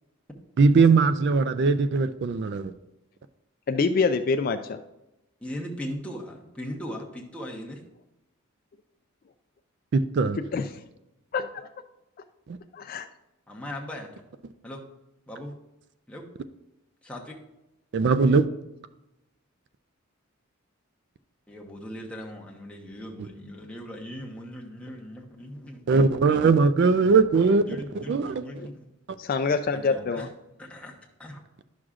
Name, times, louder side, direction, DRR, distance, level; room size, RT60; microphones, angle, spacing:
voice 1, 0.6-2.7 9.9-10.4 12.5-12.6 17.9-18.5 23.2-23.3 25.9-27.6 27.9-28.5 29.1-29.2, right 4 dB, 50° right, 0.3 m, -20 dB
voice 2, 3.7-4.8 10.5-10.7 11.3-11.7 12.7-13.1 28.6-28.7 29.2-30.3, left 4 dB, 40° left, 0.3 m, -26 dB
voice 3, 5.4-7.8 13.5-14.1 14.6-14.8 15.3-15.5 16.1-16.2 17.0-17.4 21.5-26.5 27.7-28.8 29.7-30.0 30.6-30.9 31.2-31.4, equal, 5° left, 0.9 m, -39 dB
11.0 x 6.2 x 2.4 m
head